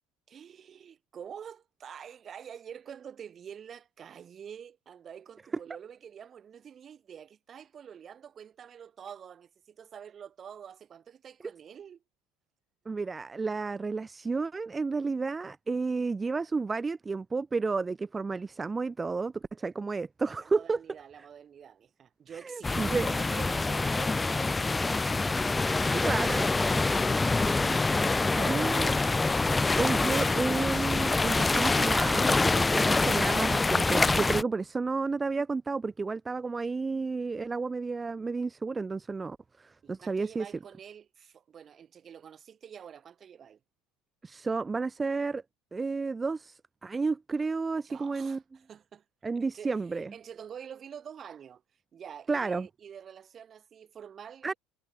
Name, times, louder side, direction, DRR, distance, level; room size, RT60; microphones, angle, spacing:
voice 1, 0.3-12.0 20.4-29.0 39.8-43.6 47.8-49.0 49.5-51.6 51.9-54.6, right 8 dB, 30° right, 7.4 m, -47 dB
voice 2, 12.9-20.8 22.4-23.1 25.9-26.5 28.4-28.9 29.8-40.5 44.2-45.4 45.7-48.4 49.2-50.1 52.3-52.7 54.4-54.5, right 4 dB, 15° right, 2.5 m, -31 dB
sound 1, 22.6-34.4, left 3 dB, 10° left, 1.3 m, -26 dB
supercardioid pair, 125°, 0 cm